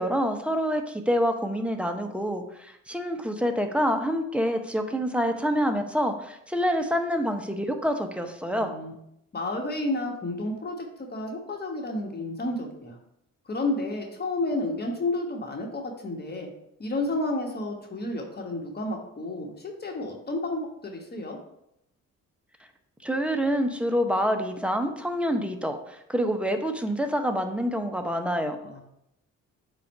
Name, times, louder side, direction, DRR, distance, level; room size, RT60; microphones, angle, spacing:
voice 1, 0.0-8.7 23.0-28.6, equal, 5° right, 5 dB, 0.7 m, -27 dB
voice 2, 8.5-8.9 9.3-13.0 13.5-16.5 16.8-21.4 28.6-28.8, left 2 dB, 35° left, 1 dB, 1.3 m, -31 dB
7.5 x 2.5 x 5.3 m, 0.78 s
cardioid pair, 90°, 30 cm